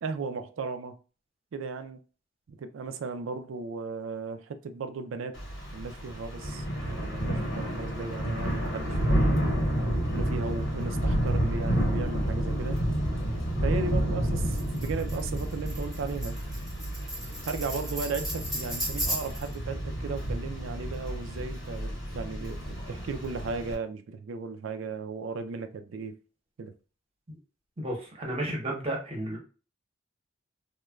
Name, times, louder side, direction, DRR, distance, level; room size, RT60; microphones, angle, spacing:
voice 1, 0.0-1.0 1.5-2.0 2.5-5.4 5.7-9.5 10.1-12.8 13.6-16.4 17.5-26.1 26.6-26.7, right 4 dB, 80° right, 0.4 m, -36 dB
Thunder / Rain, 5.3-23.7, equal, 65° left, 1.0 m, -30 dB
Tambourine, 14.5-19.5, equal, ahead, 0.8 m, -36 dB
voice 2, 27.8-29.4, right 1 dB, 30° right, 0.9 m, -32 dB
3.0 x 2.2 x 2.3 m
head